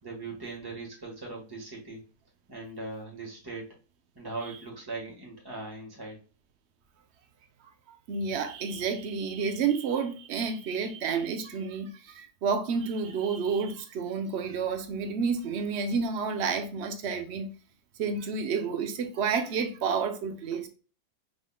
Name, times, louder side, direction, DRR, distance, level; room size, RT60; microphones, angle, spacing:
voice 1, 0.0-2.0 2.5-3.6 4.1-6.2, right 3 dB, 15° right, 1.5 m, -39 dB
voice 2, 8.1-17.5 18.0-20.7, right 5 dB, 55° right, 0.9 m, -30 dB
5.5 x 3.8 x 2.2 m
omnidirectional pair, 1.7 m